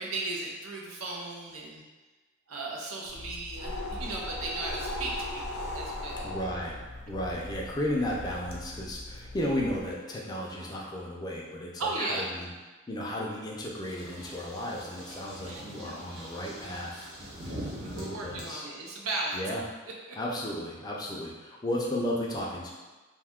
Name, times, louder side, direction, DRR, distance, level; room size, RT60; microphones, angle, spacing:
voice 1, 0.0-1.8 2.5-3.7 4.0-6.3 11.8-12.2 15.1-16.0 17.9-19.4 20.1-20.2, right 2 dB, 75° right, -2 dB, 0.6 m, -36 dB
sound 1, 3.1-9.9, left 1 dB, 80° left, 0.6 m, -39 dB
voice 2, 6.2-6.8 7.1-12.5 12.9-17.1 17.8-18.7 19.3-19.6 20.1-22.7, left 1 dB, 20° left, -3 dB, 0.4 m, -34 dB
sound 2, 13.8-18.4, equal, 60° right, 1.0 m, -42 dB
2.6 x 2.3 x 3.5 m, 1.2 s
head